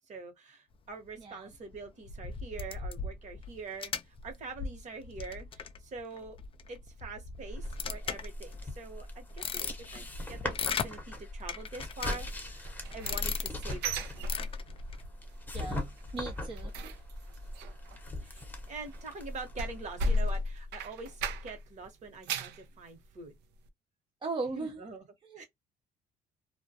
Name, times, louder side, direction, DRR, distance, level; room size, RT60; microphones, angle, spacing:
voice 1, 0.1-6.4 6.7-14.1 18.2-23.3 24.5-25.0 25.4-25.5, right 3 dB, 45° right, 1.0 m, -44 dB
voice 2, 1.2-1.5 15.5-16.9 24.2-24.8 25.2-25.5, right 3 dB, 30° right, 0.5 m, -38 dB
sound 1, 1.7-8.6 9.1-10.9 11.5-12.6 12.9-13.8 14.2-15.1, left 6 dB, 35° left, 0.4 m, -38 dB
sound 2, 7.4-20.1, left 1 dB, 10° left, 0.8 m, -41 dB
sound 3, 12.6-15.0 15.3-15.6 15.9-21.7 22.0-22.6 23.1-23.2 23.7-23.8, equal, 85° right, 0.5 m, -35 dB
2.2 x 2.1 x 2.6 m
cardioid pair, 110°, 17 cm